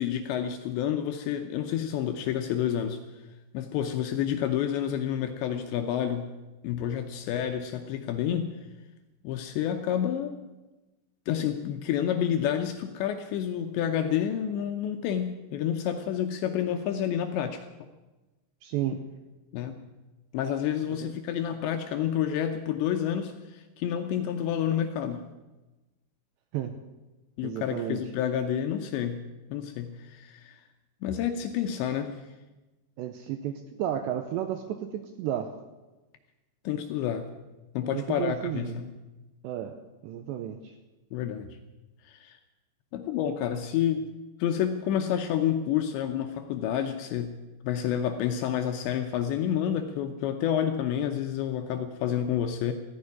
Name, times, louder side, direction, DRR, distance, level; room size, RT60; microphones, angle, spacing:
voice 1, 0.0-3.0 3.5-6.3 6.6-8.5 9.2-10.4 11.3-17.6 19.5-19.8 20.3-25.3 27.4-30.6 31.0-32.2 36.6-37.3 37.7-38.9 41.1-41.5 42.0-42.4 42.9-44.1 44.4-52.7, left 9 dB, 75° left, 6 dB, 2.7 m, -29 dB
voice 2, 18.6-19.0 20.9-21.1 26.5-26.7 27.4-28.0 33.0-35.5 37.9-38.8 39.4-39.8 40.0-40.7, right 11 dB, 80° right, 7 dB, 2.6 m, -32 dB
15.0 x 10.0 x 9.6 m, 1.1 s
omnidirectional pair, 5.9 m